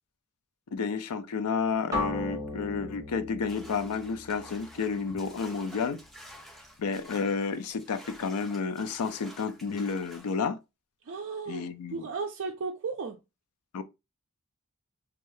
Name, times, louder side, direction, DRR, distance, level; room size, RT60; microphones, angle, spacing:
voice 1, 0.7-6.0 6.8-10.6 11.5-12.0 13.7-13.8, left 5 dB, 75° left, 0.4 m, -31 dB
sound 1, 1.9-5.9, left 2 dB, 15° right, 1.1 m, -37 dB
sound 2, 3.5-10.4, equal, ahead, 0.6 m, -50 dB
voice 2, 11.0-13.2, right 4 dB, 55° right, 0.4 m, -35 dB
2.7 x 2.4 x 3.1 m
head